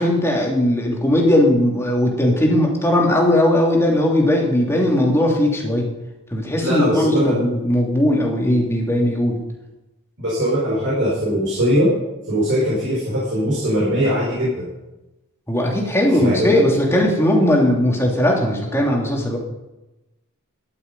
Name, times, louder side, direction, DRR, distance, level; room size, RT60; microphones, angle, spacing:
voice 1, 0.0-5.9 6.3-9.4 15.5-19.4, left 1 dB, 10° left, -1 dB, 2.8 m, -18 dB
voice 2, 6.6-7.3 10.2-11.9 12.3-14.7 16.2-16.6, equal, 55° right, -6 dB, 4.9 m, -20 dB
13.0 x 11.0 x 5.4 m, 1.0 s
head